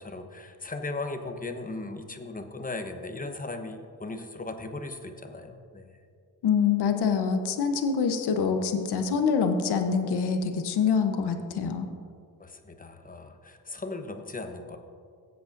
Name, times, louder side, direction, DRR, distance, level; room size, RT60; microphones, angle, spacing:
voice 1, 0.0-6.0 12.4-14.8, left 2 dB, 20° left, 6 dB, 1.0 m, -37 dB
voice 2, 6.4-11.9, left 6 dB, 65° left, 6 dB, 1.0 m, -25 dB
16.0 x 7.9 x 2.6 m, 2.2 s
supercardioid pair, 65°, 43 cm